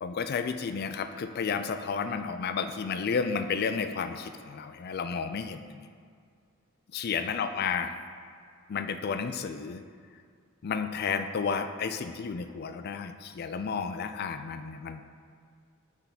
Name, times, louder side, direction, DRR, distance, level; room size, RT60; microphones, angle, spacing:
voice 1, 0.0-5.9 6.9-7.9 8.7-9.8 10.6-15.0, left 5 dB, 50° left, 9 dB, 0.4 m, -32 dB
9.9 x 3.6 x 4.0 m, 2.1 s
head